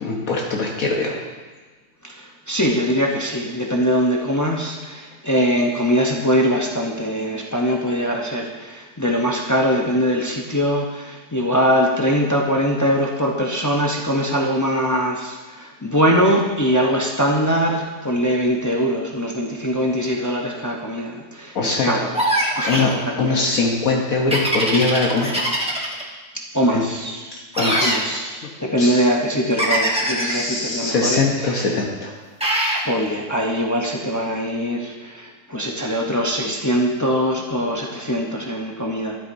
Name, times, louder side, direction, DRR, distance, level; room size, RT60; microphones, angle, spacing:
voice 1, 0.0-1.2 21.5-21.9 22.5-25.6 26.7-26.8 27.3-28.2 28.8-29.1 30.2-32.1, left 3 dB, 65° left, -1 dB, 1.4 m, -22 dB
voice 2, 2.0-22.1 22.5-23.4 26.3-27.3 27.8-31.6 32.8-39.2, equal, 30° left, -1 dB, 0.3 m, -22 dB
sound 1, 22.1-22.9 24.3-26.0 27.5-28.0 29.6-30.4 32.4-32.8, right 1 dB, 5° right, 0.9 m, -22 dB
13.0 x 7.8 x 2.6 m, 1.3 s
omnidirectional pair, 1.6 m